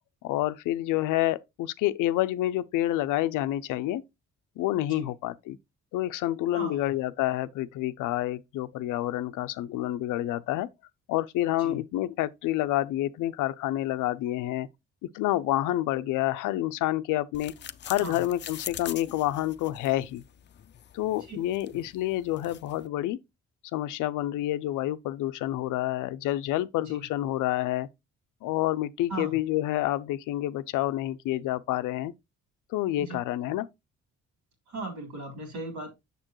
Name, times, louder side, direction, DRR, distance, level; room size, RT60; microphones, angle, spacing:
voice 1, 0.2-4.0 4.6-5.6 5.9-10.7 11.1-14.7 15.1-17.5 17.9-20.2 20.9-23.2 23.7-27.9 28.4-32.1 32.7-33.7, left 14 dB, 90° left, 0.5 m, -28 dB
voice 2, 6.5-6.9 11.6-11.8 18.0-18.2 21.3-21.4 26.8-27.0 29.1-29.4 33.0-33.2 34.7-35.9, right 2 dB, 75° right, 3.6 m, -37 dB
sound 1, 17.3-22.9, left 9 dB, 35° left, 0.4 m, -44 dB
6.7 x 6.6 x 3.0 m
cardioid pair, 90°, 30 cm